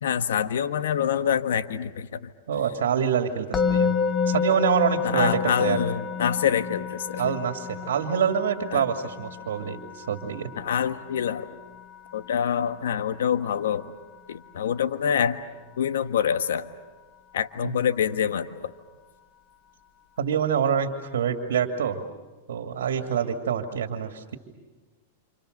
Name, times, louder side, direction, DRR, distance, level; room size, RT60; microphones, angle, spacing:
voice 1, 0.0-2.3 5.0-7.4 8.7-8.8 10.6-11.5 12.1-13.9 14.3-15.4 15.8-16.7 17.3-18.7, left 8 dB, 85° left, 9 dB, 1.5 m, -26 dB
voice 2, 2.5-4.0 4.3-5.3 5.6-5.8 7.2-10.5 17.6-17.7 20.2-22.0 22.5-24.4, right 8 dB, 85° right, 5 dB, 2.4 m, -26 dB
Musical instrument, 3.5-14.6, left 6 dB, 15° left, 1.5 m, -31 dB
29.0 x 28.5 x 6.7 m, 1.3 s
hypercardioid pair, 130°, 0 cm